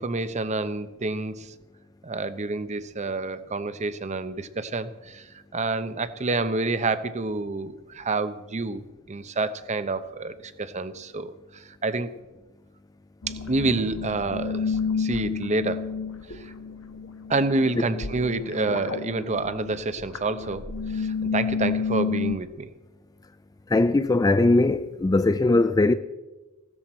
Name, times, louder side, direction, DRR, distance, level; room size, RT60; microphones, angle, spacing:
voice 1, 0.0-1.5 2.0-5.3 5.5-12.1 13.3-15.9 16.3-16.5 17.3-20.6 20.9-22.7, right 3 dB, 30° right, 0.7 m, -28 dB
sound 1, 13.2-22.3, left 5 dB, 70° left, 1.3 m, -30 dB
voice 2, 23.7-25.9, left 2 dB, 15° left, 0.3 m, -20 dB
16.0 x 13.5 x 4.3 m
head